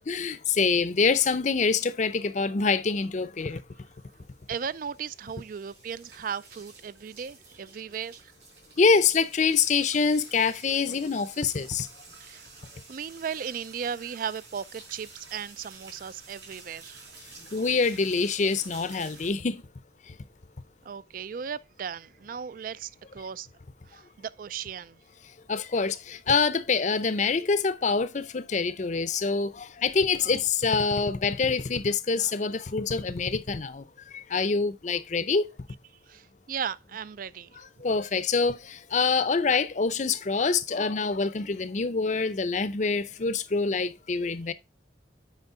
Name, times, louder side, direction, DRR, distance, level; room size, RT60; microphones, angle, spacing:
voice 1, 0.1-3.6 8.8-11.9 17.5-19.6 20.1-20.2 25.5-35.5 37.8-44.5, left 4 dB, 45° left, 0.5 m, -25 dB
sound 1, 3.6-19.3, right 3 dB, 80° right, 4.5 m, -50 dB
voice 2, 4.5-8.3 12.2-17.0 20.8-23.5 23.9-25.0 36.1-37.6, right 7 dB, 50° right, 0.3 m, -36 dB
8.1 x 5.2 x 3.7 m
head